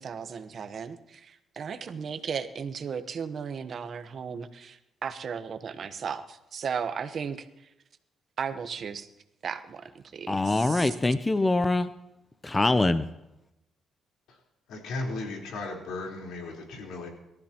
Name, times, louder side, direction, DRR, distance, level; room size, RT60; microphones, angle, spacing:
voice 1, 0.0-7.5 8.4-9.1 9.4-11.0, right 6 dB, 55° right, 10 dB, 1.0 m, -35 dB
voice 2, 10.3-11.9 12.4-13.0, left 2 dB, 20° left, 12 dB, 0.6 m, -24 dB
voice 3, 14.7-17.1, left 2 dB, 85° left, -1 dB, 4.0 m, -36 dB
26.0 x 13.5 x 3.0 m, 0.92 s
cardioid pair, 90°, 0 cm